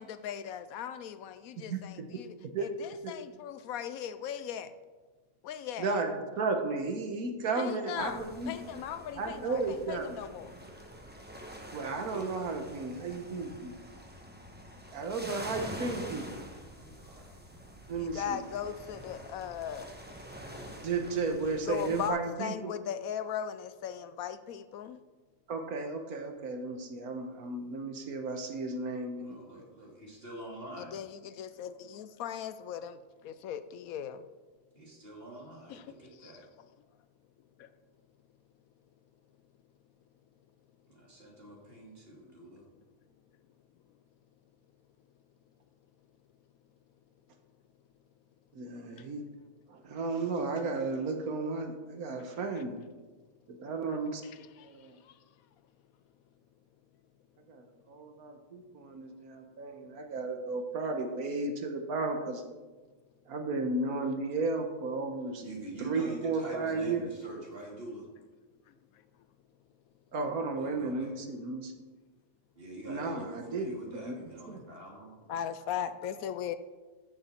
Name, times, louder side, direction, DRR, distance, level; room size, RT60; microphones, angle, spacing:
voice 1, 0.0-4.7 5.4-5.9 7.6-10.5 18.0-19.9 21.6-25.0 30.8-33.0 33.2-34.2 35.7-35.8 36.2-36.3 37.6-37.7 54.6-54.7 55.1-55.2 75.3-76.6, left 9 dB, 75° left, 12 dB, 1.0 m, -38 dB
voice 2, 5.8-8.5 9.2-10.1 11.7-13.7 14.9-16.4 17.9-18.4 20.8-22.7 25.5-29.4 48.5-49.2 49.7-52.8 53.5-54.9 57.5-62.4 63.3-65.4 65.8-67.0 70.1-71.7 72.9-74.2 74.5-74.6, right 3 dB, 75° right, 5 dB, 1.5 m, -34 dB
sound 1, 8.0-22.1, equal, 10° right, 1.0 m, -46 dB
voice 3, 11.8-12.4 16.7-17.6 29.2-31.0 34.7-36.4 40.9-42.6 65.4-68.1 70.5-71.1 72.6-75.2, right 2 dB, 40° right, -2 dB, 2.9 m, -45 dB
14.0 x 6.9 x 4.4 m, 1.3 s
omnidirectional pair, 1.6 m